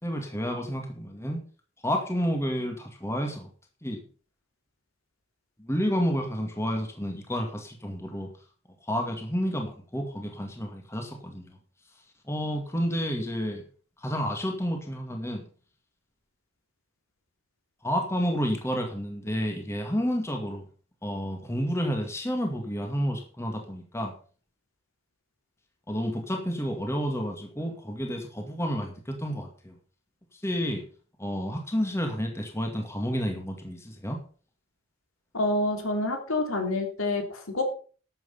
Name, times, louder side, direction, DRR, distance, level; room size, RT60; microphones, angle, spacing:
voice 1, 0.0-1.4 1.8-3.5 3.8-4.0 5.6-8.3 8.8-11.6 12.3-13.6 14.0-15.5 17.8-20.6 21.0-24.1 25.9-29.8 30.3-30.9 31.2-34.2, equal, 15° left, 3 dB, 2.0 m, -30 dB
voice 2, 35.3-37.6, left 2 dB, 80° left, 4 dB, 3.3 m, -27 dB
12.5 x 7.9 x 5.5 m, 0.41 s
head